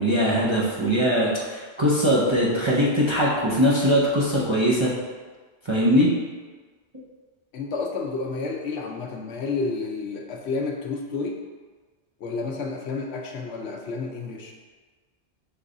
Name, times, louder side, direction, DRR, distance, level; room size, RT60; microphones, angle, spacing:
voice 1, 0.0-4.9 5.7-6.1, equal, 30° right, -7 dB, 0.6 m, -21 dB
voice 2, 7.5-11.4 12.2-14.5, left 4 dB, 70° left, 1 dB, 0.8 m, -30 dB
5.2 x 2.3 x 3.8 m, 1.4 s
omnidirectional pair, 1.2 m